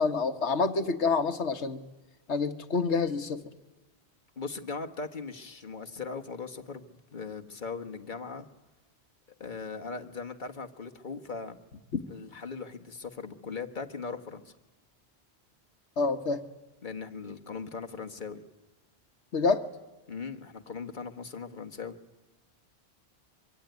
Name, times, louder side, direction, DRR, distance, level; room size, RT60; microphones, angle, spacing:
voice 1, 0.0-1.8 2.3-3.4 16.0-16.4 19.3-19.7, left 4 dB, 90° left, 8 dB, 1.7 m, -27 dB
voice 2, 4.4-8.5 9.4-11.6 12.1-14.5 16.8-18.4 20.1-22.0, left 4 dB, 45° left, 5 dB, 1.7 m, -39 dB
24.5 x 24.5 x 9.5 m, 1.1 s
omnidirectional pair, 1.1 m